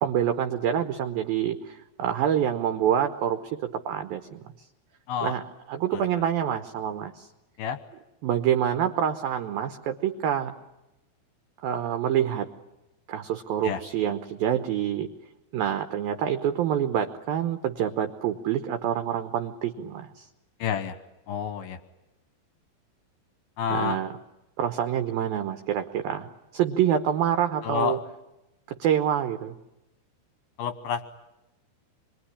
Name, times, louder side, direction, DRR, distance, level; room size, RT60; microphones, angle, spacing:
voice 1, 0.0-4.4 5.2-5.4 5.7-7.3 8.2-10.5 11.6-12.5 13.1-15.1 15.5-20.3 23.7-24.1 24.6-26.3 26.5-28.0 28.8-29.6, right 9 dB, 75° right, 7 dB, 2.2 m, -26 dB
voice 2, 20.6-21.0 21.3-21.8 23.6-24.0 27.6-28.0 30.6-31.0, left 7 dB, 70° left, 10 dB, 2.3 m, -28 dB
26.5 x 22.5 x 10.0 m, 0.94 s
omnidirectional pair, 5.8 m